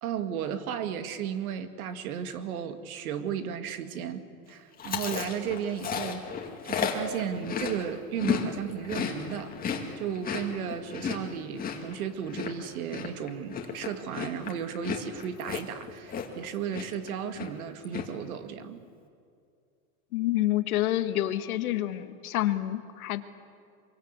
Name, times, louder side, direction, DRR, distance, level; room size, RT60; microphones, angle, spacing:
voice 1, 0.0-6.3 6.6-9.5 10.0-18.8, right 8 dB, 85° right, 9 dB, 2.1 m, -34 dB
Chewing mastication, 4.8-8.5 8.7-16.5 16.7-17.1 17.3-18.0, left 7 dB, 20° left, 2.3 m, -33 dB
voice 2, 20.1-23.5, left 14 dB, 90° left, 9 dB, 1.7 m, -28 dB
24.0 x 23.5 x 8.2 m, 2.4 s
supercardioid pair, 145°, 42 cm